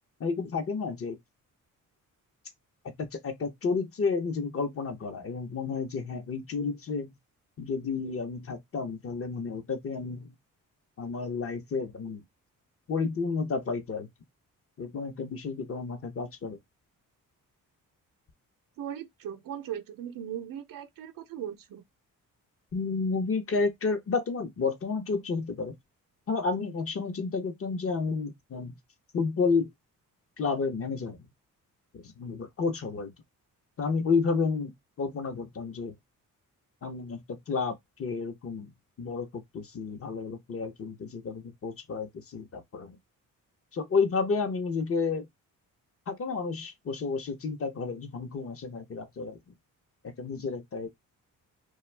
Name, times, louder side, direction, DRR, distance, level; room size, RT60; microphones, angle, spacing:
voice 1, 0.2-1.2 3.0-7.1 7.6-10.3 11.0-12.2 12.9-14.1 14.8-16.6 22.7-25.7 26.3-28.8 29.1-29.7 30.4-31.2 31.9-33.1 33.8-35.9 36.8-38.7 39.0-43.0 43.7-45.3 46.1-49.4 50.2-50.9, left 4 dB, 40° left, 0.8 m, -31 dB
voice 2, 18.8-21.8, right 10 dB, 75° right, 0.6 m, -38 dB
2.3 x 2.3 x 3.2 m
cardioid pair, 85°, 34 cm